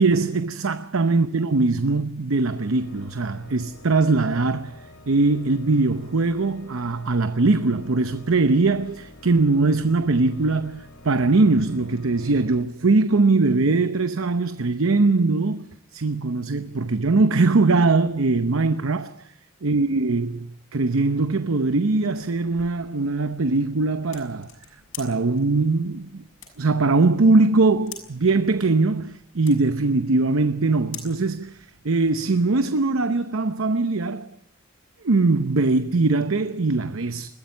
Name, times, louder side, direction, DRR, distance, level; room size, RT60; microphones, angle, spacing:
voice 1, 0.0-15.7 15.9-19.3 19.6-24.5 25.0-26.2 26.6-34.3 35.0-37.3, right 3 dB, 75° right, 0.8 m, -21 dB
Organ, 2.4-13.3, left 1 dB, 90° left, 2.9 m, -48 dB
sound 1, 21.8-32.2, left 7 dB, 70° left, 6.4 m, -47 dB
21.0 x 14.5 x 9.5 m
head